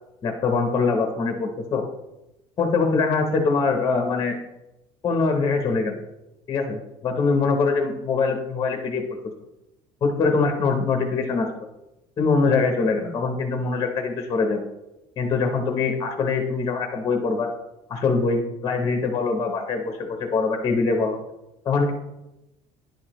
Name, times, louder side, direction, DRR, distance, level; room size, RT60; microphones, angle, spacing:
voice 1, 0.2-1.8 2.6-4.3 5.0-6.0 6.5-9.0 10.0-11.5 12.2-14.6 15.2-17.5 17.9-21.2 21.6-21.9, left 4 dB, 25° left, 4 dB, 0.7 m, -23 dB
10.5 x 4.8 x 3.0 m, 0.94 s
cardioid pair, 170°, 13 cm